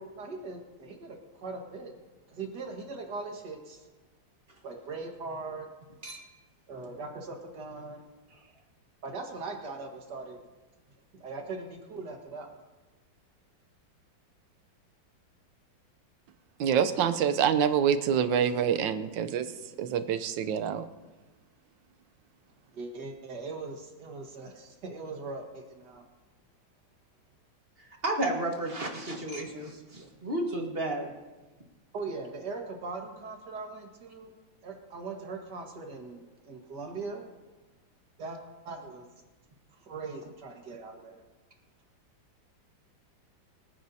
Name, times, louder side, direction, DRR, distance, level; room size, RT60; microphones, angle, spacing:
voice 1, 0.0-1.9 2.3-3.9 4.6-5.7 6.7-8.1 9.0-10.4 11.1-12.5 22.7-26.0 31.9-34.3 34.6-37.3 38.2-38.4 38.7-39.1 39.8-41.2, right 3 dB, 60° right, 2 dB, 2.2 m, -40 dB
voice 2, 16.6-19.5 19.8-20.8, right 8 dB, 75° right, 11 dB, 1.4 m, -26 dB
voice 3, 27.8-31.1, right 1 dB, 30° right, 1 dB, 1.8 m, -32 dB
23.5 x 9.5 x 2.8 m, 1.2 s
omnidirectional pair, 2.1 m